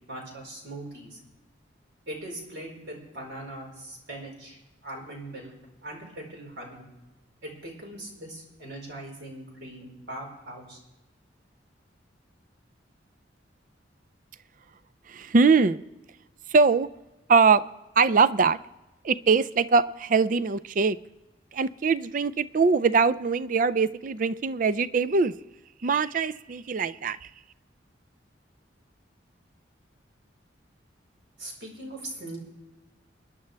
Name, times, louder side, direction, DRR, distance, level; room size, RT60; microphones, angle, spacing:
voice 1, 0.1-1.2 2.1-5.5 5.8-6.8 7.4-10.8 31.4-32.4, right 1 dB, 70° right, -1 dB, 4.8 m, -40 dB
voice 2, 15.1-15.8 16.5-16.9 17.3-17.6 18.0-18.6 19.0-21.0 21.5-25.3 25.8-27.3, right 4 dB, 45° right, 15 dB, 0.4 m, -22 dB
28.0 x 10.5 x 3.4 m, 1.0 s
head